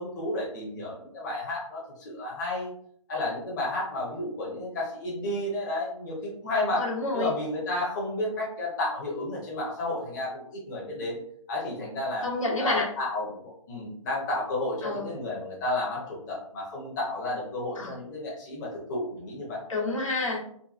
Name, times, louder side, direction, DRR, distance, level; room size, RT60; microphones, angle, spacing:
voice 1, 0.0-2.7 3.1-6.8 7.1-11.2 11.5-12.3 12.6-19.6, left 1 dB, 35° left, -4 dB, 0.8 m, -32 dB
voice 2, 6.8-7.3 12.2-12.9 14.8-15.1 17.8-18.0 19.7-20.4, left 2 dB, 70° left, -3 dB, 1.1 m, -28 dB
3.8 x 2.3 x 2.4 m, 0.64 s
figure-of-eight pair, 125°, 17 cm